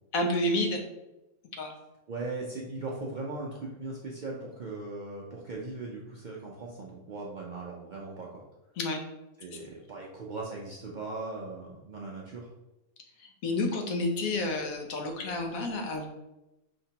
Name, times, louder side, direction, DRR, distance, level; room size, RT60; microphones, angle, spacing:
voice 1, 0.1-0.8 1.6-1.7 8.8-9.0 13.4-16.1, left 2 dB, 85° left, 3 dB, 1.2 m, -29 dB
voice 2, 2.1-8.4 9.4-12.5, right 3 dB, 60° right, -3 dB, 0.5 m, -39 dB
5.2 x 2.9 x 2.8 m, 0.97 s
omnidirectional pair, 1.4 m